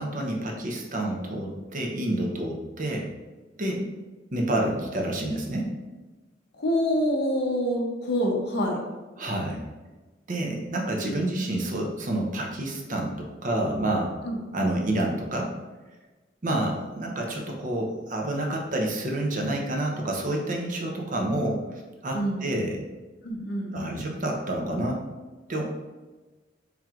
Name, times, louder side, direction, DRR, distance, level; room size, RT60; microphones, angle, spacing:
voice 1, 0.0-3.1 3.6-3.8 4.3-5.7 9.2-9.6 10.3-14.1 14.5-15.5 16.4-22.8 23.7-25.0 25.5-25.6, right 1 dB, 45° right, 0 dB, 0.6 m, -28 dB
voice 2, 6.5-8.8 14.2-14.7 22.1-22.5 23.2-24.0, equal, 60° left, 2 dB, 0.6 m, -27 dB
4.4 x 3.6 x 2.4 m, 1.2 s
head